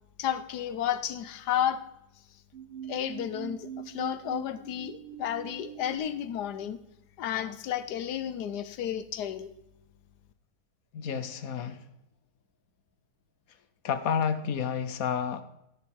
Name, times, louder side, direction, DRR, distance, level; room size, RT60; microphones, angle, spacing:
voice 1, 0.2-1.8 2.9-6.8 7.2-9.5, left 10 dB, 80° left, 14 dB, 1.3 m, -32 dB
sound 1, 2.5-6.0, right 10 dB, 45° right, 1.2 m, -42 dB
voice 2, 10.9-11.8 13.8-15.4, left 7 dB, 65° left, 12 dB, 1.2 m, -30 dB
13.0 x 7.0 x 4.6 m, 0.83 s
omnidirectional pair, 1.7 m